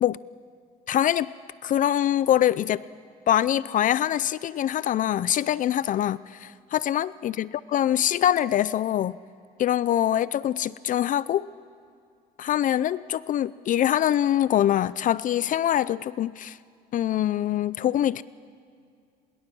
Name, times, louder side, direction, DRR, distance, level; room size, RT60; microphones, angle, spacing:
voice 1, 0.9-1.3 1.6-2.8 3.3-9.2 9.6-11.5 12.4-16.6 16.9-18.2, left 11 dB, 50° left, 18 dB, 0.5 m, -24 dB
25.0 x 22.0 x 6.2 m, 2.4 s
cardioid pair, 110°, 17 cm